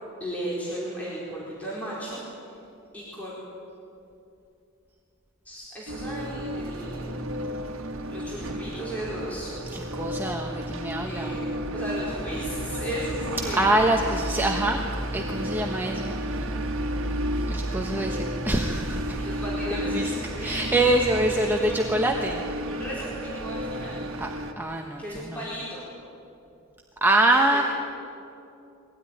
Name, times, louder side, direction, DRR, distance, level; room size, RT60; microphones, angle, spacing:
voice 1, 0.2-2.2 2.5-2.6 2.9-3.3 5.4-7.2 8.1-9.5 11.0-11.5 11.7-13.8 19.0-20.8 21.2-22.1 22.7-24.1 25.0-25.9 27.5-27.6, equal, 5° left, -7 dB, 4.6 m, -35 dB
sound 1, 5.9-24.5, equal, 65° right, 1.7 m, -32 dB
voice 2, 9.7-11.4 13.5-14.8 15.1-16.4 17.5-19.2 19.7-22.4 24.2-24.3 24.6-25.4 27.0-27.6, right 1 dB, 10° right, 1 dB, 1.2 m, -25 dB
22.5 x 17.0 x 9.9 m, 2.7 s
head